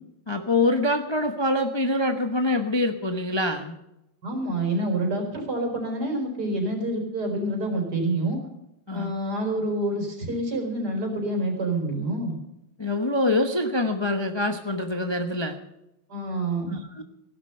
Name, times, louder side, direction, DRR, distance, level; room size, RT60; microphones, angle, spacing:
voice 1, 0.3-3.7 8.9-9.1 12.8-15.6 16.7-17.0, left 2 dB, 20° left, 5 dB, 0.8 m, -25 dB
voice 2, 4.2-8.4 8.9-12.4 16.1-16.8, right 1 dB, 55° right, 2 dB, 4.7 m, -27 dB
16.0 x 12.0 x 5.7 m, 0.89 s
omnidirectional pair, 2.1 m